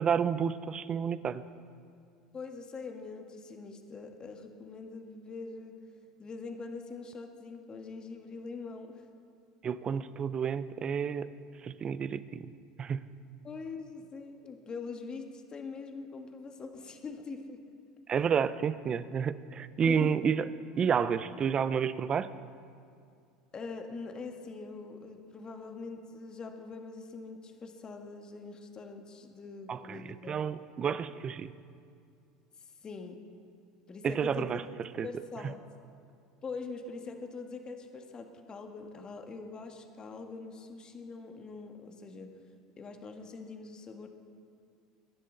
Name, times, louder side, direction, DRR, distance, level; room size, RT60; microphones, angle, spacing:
voice 1, 0.0-1.4 9.6-11.3 11.6-13.0 18.1-20.4 20.8-22.3 29.7-31.5 34.0-35.1, right 7 dB, 35° right, 15 dB, 0.6 m, -30 dB
voice 2, 2.3-5.8 6.2-9.0 13.4-17.6 19.8-20.1 23.5-30.4 32.6-33.2 33.9-34.7 35.0-35.6 36.4-42.3 42.8-44.1, left 4 dB, 30° left, 5 dB, 1.6 m, -43 dB
23.0 x 10.0 x 4.0 m, 2.4 s
hypercardioid pair, 80°, 3 cm